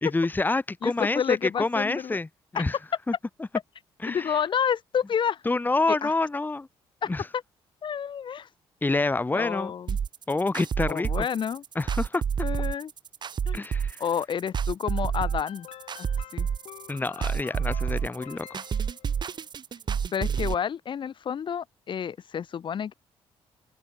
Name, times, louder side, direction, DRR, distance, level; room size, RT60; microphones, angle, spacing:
voice 1, 0.0-2.3 2.5-2.8 3.1-3.2 4.0-4.4 5.5-6.7 7.1-7.3 8.8-9.7 10.3-11.3 11.8-12.2 13.5-14.0 16.9-18.5, left 3 dB, 20° left, 2.0 m, -27 dB
voice 2, 0.8-2.2 2.5-2.7 4.1-5.4 5.9-6.1 7.0-7.1 7.8-8.5 9.3-10.0 10.9-11.6 12.4-12.9 13.5-13.6 14.0-15.7 16.0-16.5 20.1-22.9, left 8 dB, 50° left, 1.3 m, -29 dB
sound 1, 9.9-20.5, right 7 dB, 45° right, 1.2 m, -29 dB
sound 2, 14.8-19.5, left 12 dB, 75° left, 5.1 m, -47 dB
open air
cardioid pair, 95°, 10 cm